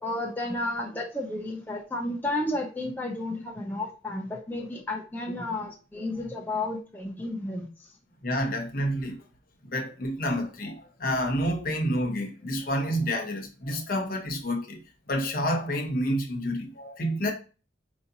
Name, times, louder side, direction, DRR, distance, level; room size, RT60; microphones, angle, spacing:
voice 1, 0.0-7.7, left 2 dB, 10° left, 0.4 m, -32 dB
voice 2, 8.2-9.2 9.7-14.8 15.1-17.3, equal, 50° left, 0.8 m, -29 dB
4.8 x 2.7 x 2.6 m
head